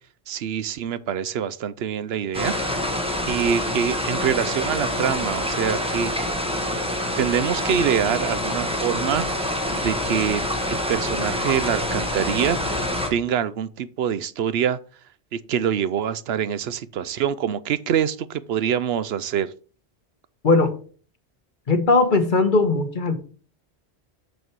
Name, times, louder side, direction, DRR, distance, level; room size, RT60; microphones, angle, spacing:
voice 1, 0.3-2.5 3.3-6.1 7.2-9.3 9.8-12.6 13.1-14.8 15.3-19.5, right 8 dB, 75° right, 0.8 m, -25 dB
sound 1, 2.3-13.1, left 1 dB, 5° right, 1.3 m, -26 dB
voice 2, 20.4-20.8 21.7-23.2, left 3 dB, 50° left, 1.2 m, -19 dB
7.0 x 6.2 x 4.6 m
omnidirectional pair, 1.1 m